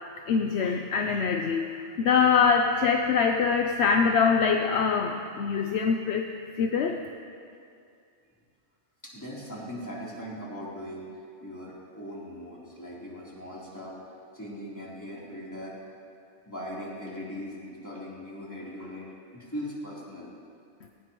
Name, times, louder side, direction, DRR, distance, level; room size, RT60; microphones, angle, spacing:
voice 1, 0.3-6.2 6.6-7.0, left 5 dB, 70° left, 4 dB, 0.9 m, -24 dB
voice 2, 9.0-15.7 16.5-19.1 19.3-20.3, equal, 15° left, -7 dB, 3.5 m, -40 dB
18.5 x 18.0 x 3.1 m, 2.3 s
omnidirectional pair, 1.2 m